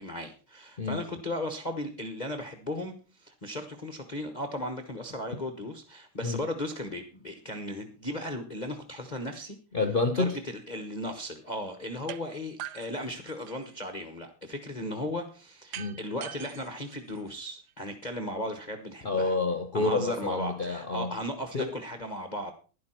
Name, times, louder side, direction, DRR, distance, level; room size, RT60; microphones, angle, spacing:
voice 1, 0.0-9.6 10.2-19.4 19.7-22.5, left 1 dB, 30° left, 5 dB, 0.8 m, -36 dB
voice 2, 9.7-10.4 15.8-16.0 19.0-21.1 21.5-21.7, left 3 dB, 75° left, 6 dB, 0.4 m, -28 dB
sound 1, 12.1-12.2 12.6-13.8 15.7-17.7, right 11 dB, 65° right, 1.0 m, -43 dB
11.5 x 11.0 x 4.4 m, 0.36 s
omnidirectional pair, 2.4 m